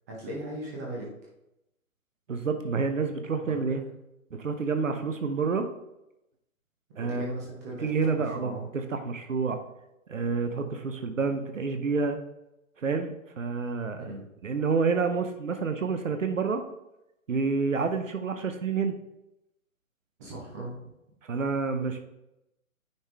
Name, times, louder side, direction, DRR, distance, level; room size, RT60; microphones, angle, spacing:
voice 1, 0.1-1.1 3.4-3.7 7.0-8.7 14.0-14.2 20.2-20.8, right 1 dB, 10° right, -4 dB, 0.7 m, -38 dB
voice 2, 2.3-3.8 4.3-5.7 7.0-7.3 7.8-9.6 10.1-12.2 12.8-14.1 14.4-16.6 17.3-18.9 21.2-22.0, right 4 dB, 60° right, 7 dB, 0.8 m, -28 dB
9.4 x 3.6 x 3.5 m, 0.88 s
figure-of-eight pair, 135°, 43 cm